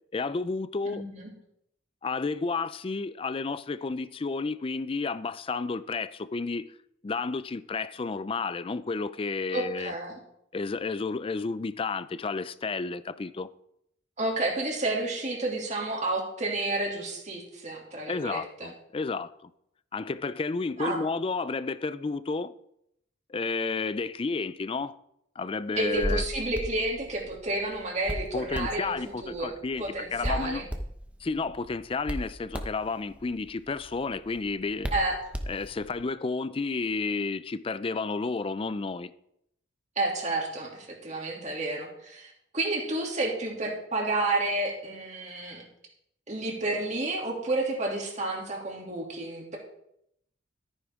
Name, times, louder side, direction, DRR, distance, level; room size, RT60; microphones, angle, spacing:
voice 1, 0.1-1.0 2.0-6.7 7.0-9.9 10.5-13.5 18.1-19.5 19.9-22.5 23.3-24.9 25.4-26.2 28.3-30.6 31.2-34.9 35.5-39.1, left 4 dB, 30° left, 0.4 m, -31 dB
voice 2, 0.9-1.3 9.5-10.1 14.2-18.7 20.8-21.0 25.8-29.0 29.2-30.7 34.9-35.2 40.0-45.6 46.3-49.6, right 2 dB, 35° right, 2.7 m, -30 dB
Hands, 25.7-36.0, equal, 5° right, 0.9 m, -37 dB
13.5 x 9.5 x 3.6 m
head